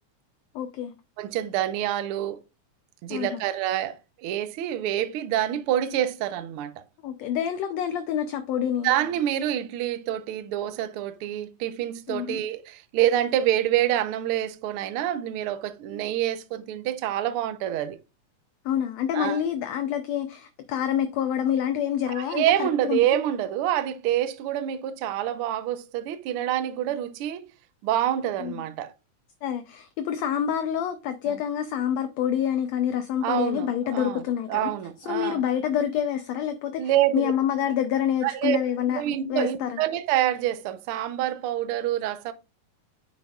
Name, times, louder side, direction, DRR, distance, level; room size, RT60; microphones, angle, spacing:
voice 1, 0.5-0.9 3.1-3.4 7.0-8.9 12.1-12.4 18.6-23.0 28.4-28.5 29.4-34.7 35.1-36.8 37.1-39.0 39.3-39.8, left 9 dB, 75° left, 1.7 m, -27 dB
voice 2, 1.2-2.4 3.0-6.8 8.8-18.0 19.1-19.4 22.1-27.4 27.8-28.9 31.3-31.4 33.2-34.2 34.5-35.4 36.8-37.3 38.2-38.6 38.9-42.3, right 12 dB, 85° right, 1.2 m, -27 dB
9.6 x 6.9 x 2.4 m
omnidirectional pair, 3.5 m